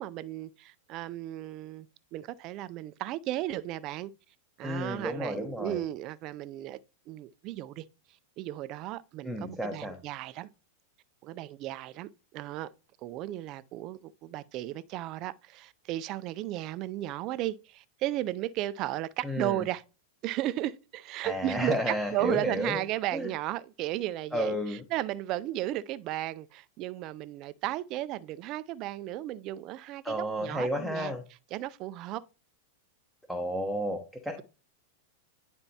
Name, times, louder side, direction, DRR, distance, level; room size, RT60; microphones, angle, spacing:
voice 1, 0.0-1.9 2.1-4.1 4.6-6.8 7.1-7.8 8.4-10.5 11.2-12.7 13.0-19.8 20.2-31.1 31.5-32.2, right 15 dB, 40° right, 0.4 m, -35 dB
voice 2, 4.6-5.8 9.2-10.0 19.2-19.7 21.2-22.8 23.1-23.3 24.3-24.8 30.0-31.2 33.3-34.4, equal, ahead, 0.9 m, -32 dB
9.8 x 4.3 x 2.8 m
hypercardioid pair, 125°, 0 cm